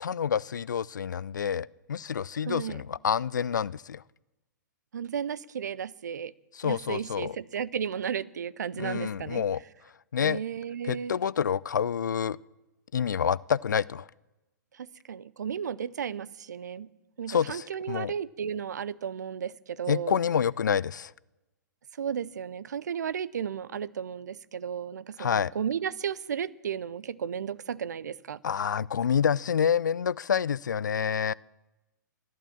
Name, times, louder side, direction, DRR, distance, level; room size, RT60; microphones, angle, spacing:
voice 1, 0.0-4.0 6.6-7.4 8.8-9.6 10.1-10.4 10.8-12.4 12.9-14.1 17.3-18.1 19.9-21.1 25.2-25.5 28.4-31.3, left 7 dB, 65° left, 24 dB, 0.4 m, -28 dB
voice 2, 2.5-2.8 4.9-6.3 6.6-9.4 10.2-11.2 14.7-16.9 17.2-20.2 21.9-28.4, right 8 dB, 60° right, 18 dB, 0.6 m, -34 dB
14.0 x 12.5 x 7.4 m, 1.1 s
figure-of-eight pair, 115°, 10 cm